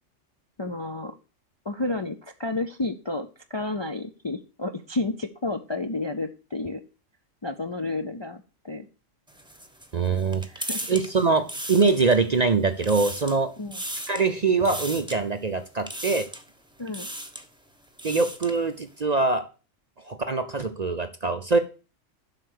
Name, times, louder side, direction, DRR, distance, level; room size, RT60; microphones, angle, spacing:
voice 1, 0.6-1.2 1.6-6.8 7.4-8.9 10.4-10.8 13.6-13.8 16.8-17.1, left 2 dB, 35° left, 6 dB, 0.4 m, -31 dB
sound 1, 9.3-12.4 12.7-13.4 13.7-14.3 14.6-15.2 15.9-16.5 16.9-17.5 17.8-18.6, right 1 dB, 5° right, 1.0 m, -36 dB
voice 2, 9.9-10.4 10.9-13.5 14.1-16.3 18.0-19.4 20.0-21.6, right 4 dB, 40° right, 9 dB, 0.6 m, -23 dB
7.7 x 5.8 x 6.6 m, 0.34 s
omnidirectional pair, 1.4 m